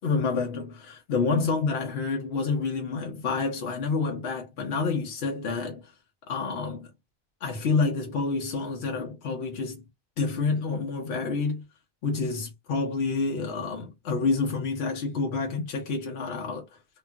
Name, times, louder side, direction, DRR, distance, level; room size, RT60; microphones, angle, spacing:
voice 1, 0.0-5.9 6.3-6.9 7.4-9.8 10.2-11.6 12.0-16.7, left 4 dB, 80° left, 1.0 m, -28 dB
3.0 x 2.4 x 2.3 m
omnidirectional pair, 1.1 m